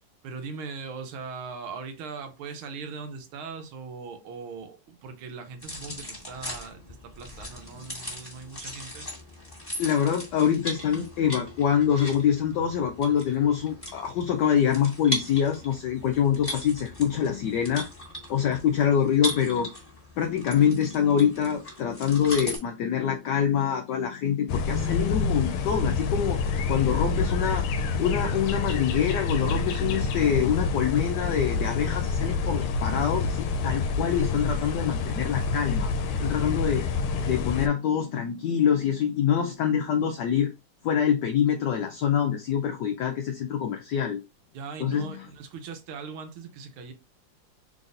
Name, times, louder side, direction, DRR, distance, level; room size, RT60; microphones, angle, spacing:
voice 1, 0.2-9.1 44.5-46.9, right 5 dB, 85° right, 1.6 m, -40 dB
sound 1, 5.6-22.6, equal, 15° left, 1.2 m, -38 dB
voice 2, 9.8-17.9 18.3-19.7 20.2-26.4 26.7-27.7 28.0-35.9 36.2-36.9 37.2-40.5 40.8-44.2 44.8-45.3, left 8 dB, 70° left, 1.1 m, -25 dB
sound 2, 24.5-37.7, left 4 dB, 90° left, 1.5 m, -27 dB
4.0 x 3.9 x 2.5 m
omnidirectional pair, 2.3 m